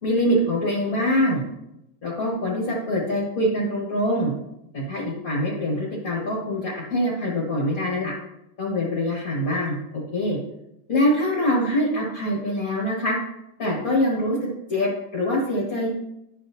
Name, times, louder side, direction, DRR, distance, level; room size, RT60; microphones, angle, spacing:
voice 1, 0.0-1.4 2.0-4.3 4.7-8.1 8.6-9.7 10.1-10.4 10.9-13.1 13.6-15.9, left 1 dB, 45° left, -3 dB, 1.1 m, -24 dB
10.5 x 6.4 x 2.7 m, 0.83 s
omnidirectional pair, 3.4 m